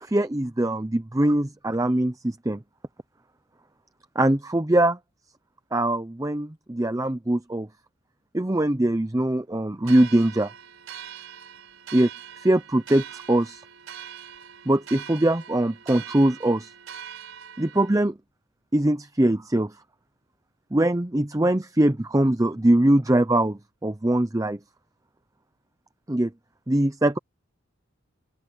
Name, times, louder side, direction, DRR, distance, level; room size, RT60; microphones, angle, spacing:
voice 1, 0.0-2.6 4.1-5.0 5.7-7.7 8.3-10.5 11.9-12.1 12.4-13.6 14.7-16.7 17.6-18.2 18.7-19.8 20.7-24.6 26.1-26.3 26.7-27.2, right 1 dB, 15° right, 0.6 m, -22 dB
sound 1, 9.8-18.0, right 9 dB, 80° right, 4.3 m, -42 dB
open air
head